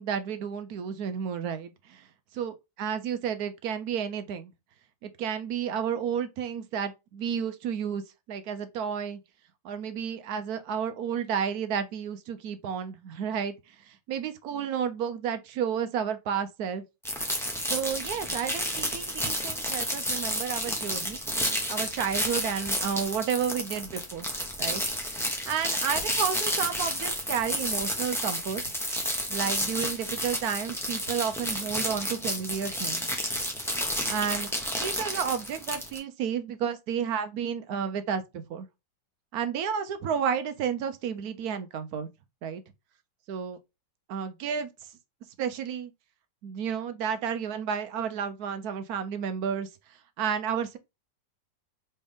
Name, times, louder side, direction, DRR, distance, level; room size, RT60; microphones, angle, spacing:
voice 1, 0.0-2.0 2.3-4.5 5.0-8.0 8.3-9.2 9.6-13.5 13.9-16.8 17.7-21.2 21.7-24.3 24.6-24.8 25.5-28.6 29.3-33.0 34.1-34.5 34.8-38.7 39.3-42.1 42.4-42.6 43.3-43.6 44.1-44.7 45.4-45.9 46.4-49.7 50.2-50.8, right 7 dB, 70° right, 1.0 m, -31 dB
sound 1, 17.0-36.0, equal, ahead, 0.6 m, -31 dB
4.2 x 3.2 x 3.4 m
omnidirectional pair, 1.9 m